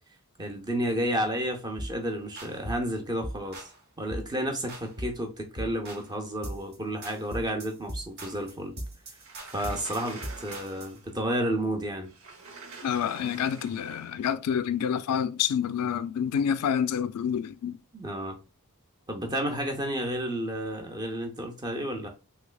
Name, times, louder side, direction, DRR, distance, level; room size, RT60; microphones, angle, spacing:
voice 1, 0.4-3.7 4.0-8.7 9.5-12.1 17.9-18.4 19.1-22.1, right 1 dB, 20° right, 0.6 m, -31 dB
sound 1, 1.8-2.0 2.4-2.9 3.2-3.8 4.1-4.3 4.7-5.2 5.6-6.1 6.4-6.8 7.0-11.0, right 1 dB, 45° right, 1.0 m, -39 dB
Sliding door, 9.2-11.1 12.0-14.2, right 4 dB, 65° right, 0.7 m, -46 dB
voice 2, 12.8-17.8, left 8 dB, 85° left, 0.3 m, -28 dB
3.2 x 3.2 x 2.2 m
head